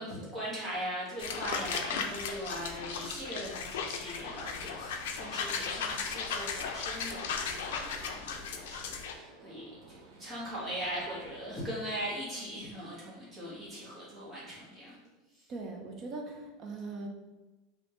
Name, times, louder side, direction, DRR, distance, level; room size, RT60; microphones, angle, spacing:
voice 1, 0.0-14.9 15.3-15.5, equal, 10° right, -8 dB, 1.3 m, -40 dB
sound 1, 1.2-9.1, left 6 dB, 75° left, 0.5 m, -36 dB
Gunshot gunfire, 4.1-12.0, right 3 dB, 70° right, 0.8 m, -54 dB
voice 2, 15.5-17.1, right 3 dB, 25° right, 2 dB, 0.6 m, -40 dB
5.1 x 2.7 x 3.0 m, 1.1 s
supercardioid pair, 180°, 0 cm